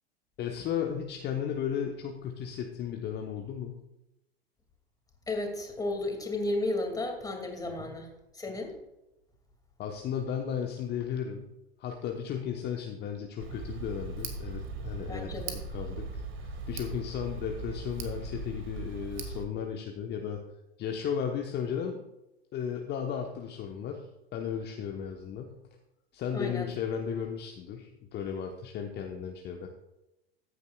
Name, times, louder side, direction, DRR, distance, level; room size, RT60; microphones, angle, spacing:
voice 1, 0.4-3.8 7.8-7.9 9.8-11.5 11.8-20.4 20.8-22.0 22.5-25.5 26.1-29.7, left 8 dB, 35° left, 3 dB, 1.1 m, -35 dB
voice 2, 5.3-8.7 15.1-15.6 26.3-26.7, left 2 dB, 10° left, 3 dB, 2.4 m, -33 dB
Tick, 13.4-19.4, right 3 dB, 40° right, 1.9 m, -39 dB
14.5 x 9.6 x 2.4 m, 0.93 s
figure-of-eight pair, 85°, 31 cm